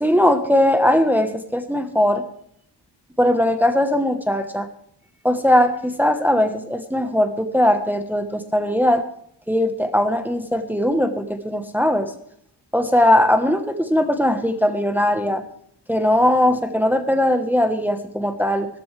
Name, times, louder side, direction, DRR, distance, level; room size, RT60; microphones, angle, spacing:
voice 1, 0.0-2.2 3.2-4.7 5.2-9.0 9.5-12.1 12.7-15.4 15.9-18.7, left 1 dB, 5° right, 6 dB, 1.2 m, -19 dB
16.0 x 13.5 x 3.4 m, 0.70 s
wide cardioid pair, 115°, 42 cm